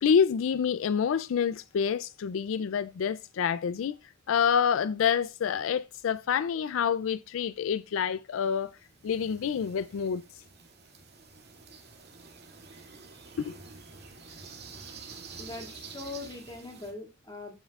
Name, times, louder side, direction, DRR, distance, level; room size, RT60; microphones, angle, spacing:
voice 1, 0.0-4.0 4.3-8.8 9.0-10.2 13.4-13.6, left 7 dB, 80° left, 0.4 m, -27 dB
sound 1, 8.4-16.9, right 4 dB, 55° right, 2.2 m, -48 dB
voice 2, 15.4-17.5, left 3 dB, 20° left, 2.3 m, -41 dB
14.5 x 5.6 x 2.4 m
head